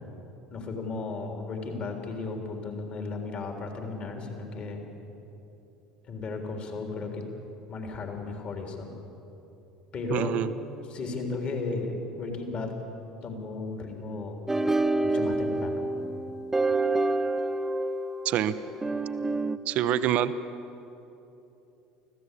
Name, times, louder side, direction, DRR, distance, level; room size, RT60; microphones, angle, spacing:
voice 1, 0.5-4.9 6.1-7.2 7.7-8.9 9.9-10.4 10.9-12.7 13.2-14.4 15.0-15.9, left 3 dB, 40° left, 3 dB, 3.6 m, -34 dB
voice 2, 10.1-10.5 18.2-18.5 19.7-20.3, right 11 dB, 50° right, 13 dB, 0.8 m, -25 dB
sound 1, 14.5-19.6, right 2 dB, 10° right, 0.9 m, -27 dB
24.5 x 16.0 x 8.4 m, 3.0 s
figure-of-eight pair, 65°, 3 cm